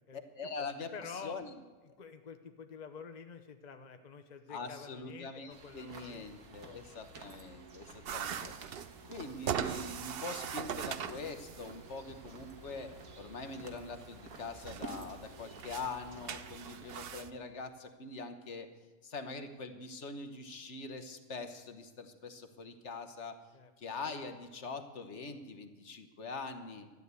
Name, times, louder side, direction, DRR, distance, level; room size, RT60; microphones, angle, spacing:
voice 1, 0.1-1.5 4.5-18.7 19.0-23.4 23.8-26.9, left 3 dB, 55° left, 8 dB, 1.3 m, -43 dB
voice 2, 0.9-1.4 2.0-6.3 6.6-6.8 23.5-23.7, left 6 dB, 35° left, 7 dB, 0.8 m, -48 dB
sound 1, 5.5-17.2, right 3 dB, 75° right, 1.9 m, -51 dB
sound 2, 8.0-17.3, right 8 dB, 55° right, 0.7 m, -42 dB
13.0 x 11.0 x 8.2 m, 1.3 s
omnidirectional pair, 1.6 m